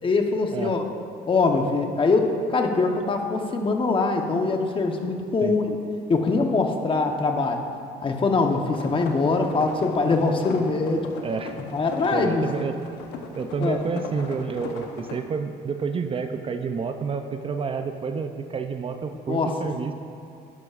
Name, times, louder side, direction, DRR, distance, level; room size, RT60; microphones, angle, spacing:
voice 1, 0.0-0.8 1.3-5.8 6.1-7.6 8.0-11.1 11.7-12.4 13.6-13.8 19.3-19.5, left 3 dB, 30° left, 3 dB, 1.0 m, -23 dB
sound 1, 8.6-15.2, left 4 dB, 90° left, 0.9 m, -38 dB
voice 2, 11.2-11.6 12.1-12.8 13.4-20.0, right 5 dB, 35° right, 7 dB, 0.5 m, -29 dB
12.0 x 11.0 x 2.5 m, 2.6 s
cardioid pair, 110°, 17 cm